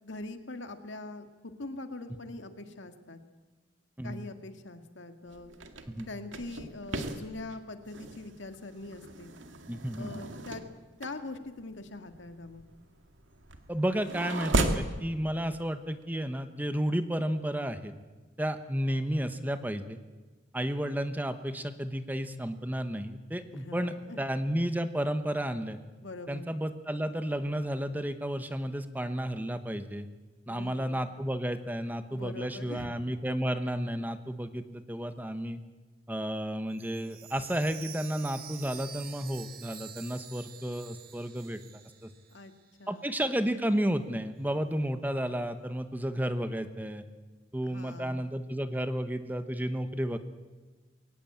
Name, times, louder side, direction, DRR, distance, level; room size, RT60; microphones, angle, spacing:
voice 1, 0.0-3.2 4.0-5.5 6.1-9.3 10.0-10.6 11.0-12.6 23.5-24.2 26.0-26.5 30.5-31.0 32.1-32.9 42.3-42.5 42.8-43.1 47.6-48.3, left 2 dB, 70° left, 7 dB, 1.9 m, -43 dB
sound 1, 5.3-14.9, right 2 dB, 80° right, 2.1 m, -36 dB
voice 2, 9.7-10.3 13.7-17.9 18.4-20.0 20.5-25.8 26.3-30.1 30.5-35.6 36.1-41.6 42.0-42.1 42.9-47.0 47.5-50.2, equal, 10° right, 10 dB, 1.1 m, -32 dB
Chime, 36.7-42.7 43.0-43.1 43.7-43.8, right 9 dB, 50° right, 1.7 m, -48 dB
22.5 x 18.5 x 8.7 m, 1.3 s
head